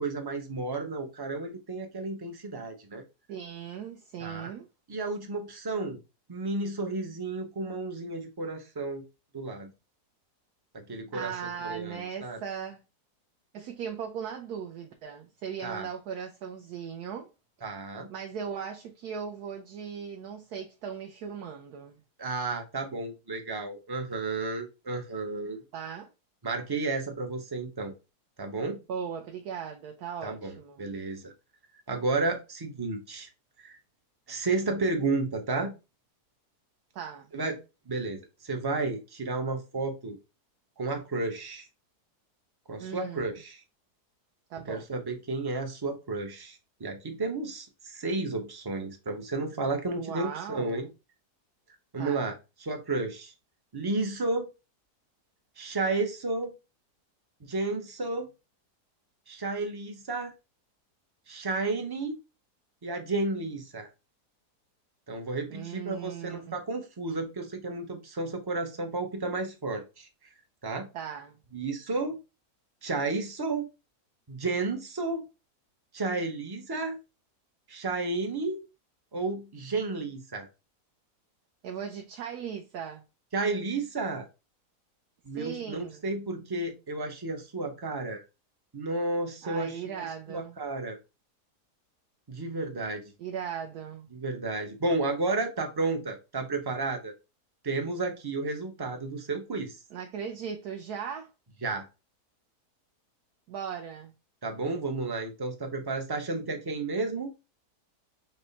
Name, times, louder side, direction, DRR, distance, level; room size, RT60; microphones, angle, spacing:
voice 1, 0.0-3.0 4.2-4.5 4.9-6.0 6.3-9.0 9.3-9.7 10.7-11.3 11.6-12.4 15.6-15.9 17.6-18.1 22.2-25.6 26.4-27.9 28.4-28.8 30.2-31.3 31.9-33.3 33.6-33.8 34.3-35.7 37.3-37.6 37.9-40.2 40.8-41.7 42.7-43.6 44.7-50.9 51.9-52.4 52.6-53.3 53.7-54.5 55.6-56.5 57.4-58.3 59.3-60.3 61.3-62.2 62.8-63.9 65.1-70.1 70.6-70.9 71.5-72.2 72.8-73.7 74.3-75.3 75.9-77.0 77.7-78.7 79.1-80.5 83.3-84.3 85.2-88.2 88.7-91.0 92.3-93.0 94.1-97.1 97.6-99.8 101.6-101.9 104.4-107.3, right 3 dB, 35° right, 0.4 m, -32 dB
voice 2, 3.3-4.7 11.1-12.8 13.5-17.3 18.1-22.0 25.7-26.1 28.9-30.9 36.9-37.3 42.8-43.3 44.5-44.8 50.0-50.9 52.0-52.3 65.5-66.6 70.9-71.4 81.6-83.0 85.3-86.0 89.4-90.6 93.2-94.1 99.9-101.3 103.5-104.1, right 7 dB, 70° right, 1.1 m, -38 dB
6.0 x 2.2 x 3.9 m
omnidirectional pair, 1.7 m